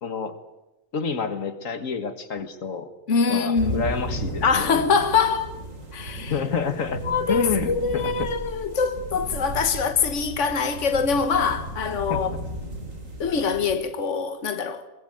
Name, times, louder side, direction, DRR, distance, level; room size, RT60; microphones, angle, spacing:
voice 1, 0.0-0.4 0.9-2.9 3.3-4.8 6.3-7.0 7.3-8.3 12.1-12.3, left 6 dB, 90° left, 2.1 m, -28 dB
voice 2, 3.1-3.9 4.4-5.5 5.9-6.3 6.9-12.3 13.2-14.9, left 5 dB, 65° left, 1.7 m, -24 dB
sound 1, 3.5-13.7, right 1 dB, 80° right, 4.4 m, -35 dB
23.5 x 20.0 x 9.3 m
omnidirectional pair, 1.3 m